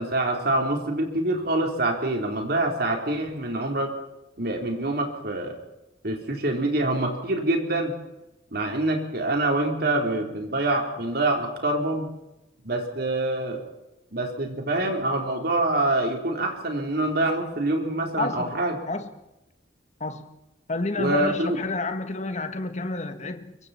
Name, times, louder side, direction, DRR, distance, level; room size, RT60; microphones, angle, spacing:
voice 1, 0.0-3.9 4.4-5.6 6.0-7.9 8.5-12.1 12.6-13.6 14.1-18.8 21.0-21.6, right 2 dB, 55° right, 4.0 m, -25 dB
voice 2, 18.2-18.6 18.9-19.1 20.0-20.3 20.7-23.6, left 2 dB, 40° left, 1.6 m, -30 dB
25.0 x 23.0 x 4.5 m
head